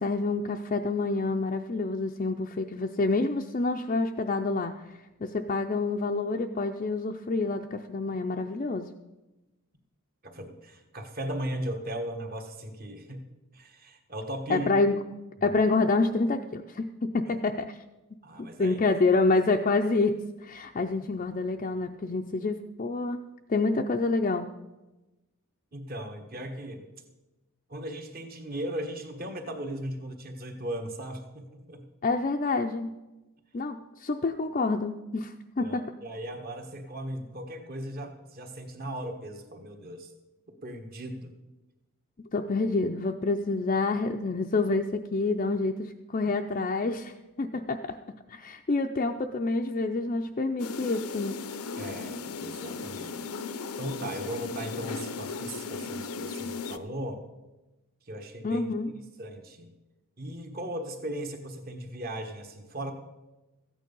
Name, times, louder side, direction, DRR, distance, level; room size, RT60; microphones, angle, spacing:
voice 1, 0.0-8.9 14.5-15.0 15.4-17.8 18.4-23.2 23.5-24.5 32.0-32.9 33.5-35.9 42.3-48.0 48.3-51.4 58.4-58.9, left 3 dB, 35° left, 3 dB, 0.4 m, -28 dB
voice 2, 10.2-13.2 13.5-14.7 15.4-15.5 18.2-18.8 25.7-26.9 27.7-31.8 35.6-40.1 40.6-41.3 51.8-53.3 53.8-57.2 58.1-58.7 59.2-59.7 60.2-62.9, right 1 dB, 40° right, 5 dB, 1.4 m, -37 dB
sound 1, 50.6-56.8, left 4 dB, 80° left, 0.6 m, -36 dB
14.0 x 9.1 x 5.3 m, 1.1 s
head